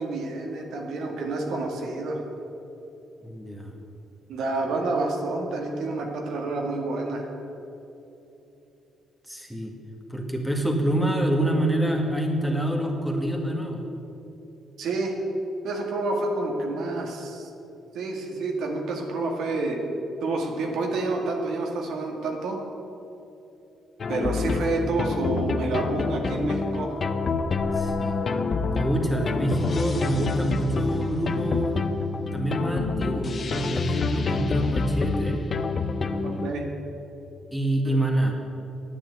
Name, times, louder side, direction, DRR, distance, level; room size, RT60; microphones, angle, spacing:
voice 1, 0.0-2.2 4.3-7.3 14.8-15.2 15.6-17.5 17.9-19.8 20.2-22.6 24.1-27.0 36.2-36.6 37.8-38.0, right 3 dB, 75° right, 1 dB, 1.9 m, -29 dB
voice 2, 3.2-3.7 9.3-9.7 10.1-13.8 27.7-28.2 28.6-31.8 32.2-35.4 37.5-38.3, right 1 dB, ahead, 0 dB, 1.9 m, -26 dB
sound 1, 24.0-36.5, left 4 dB, 45° left, 0.7 m, -27 dB
10.0 x 8.9 x 7.9 m, 2.9 s
cardioid pair, 90°, 0 cm